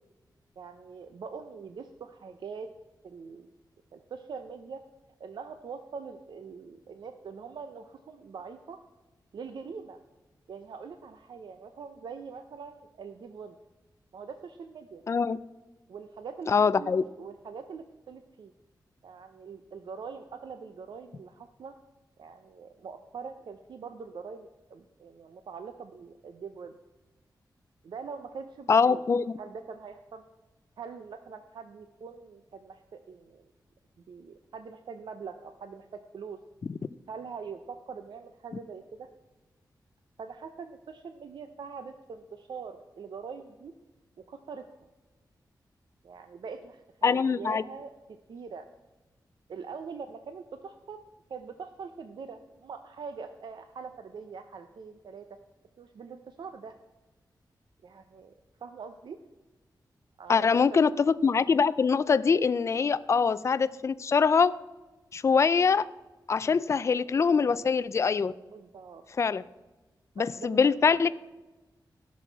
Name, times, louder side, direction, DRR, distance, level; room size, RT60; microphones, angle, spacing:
voice 1, 0.6-2.7 3.0-3.5 3.9-4.8 5.2-8.8 9.3-10.0 10.5-13.5 14.1-15.0 15.9-16.5 16.8-18.5 19.0-21.8 22.2-26.8 27.8-29.0 29.4-30.2 30.8-33.5 34.1-36.4 37.1-39.1 40.2-43.7 44.2-44.6 46.0-47.9 48.3-48.7 49.5-51.0 51.3-55.4 55.8-56.8 57.8-58.3 58.6-59.2 60.2-60.9 68.5-69.0 70.2-71.1, right 5 dB, 80° right, 8 dB, 0.6 m, -43 dB
voice 2, 15.1-15.4 16.5-17.0 28.7-29.2 36.7-36.8 47.0-47.6 60.3-64.5 65.1-65.9 66.3-68.3 69.2-69.4 70.2-71.1, left 5 dB, 40° left, 15 dB, 0.3 m, -23 dB
16.5 x 6.3 x 4.5 m, 1.1 s
wide cardioid pair, 120°, 8 cm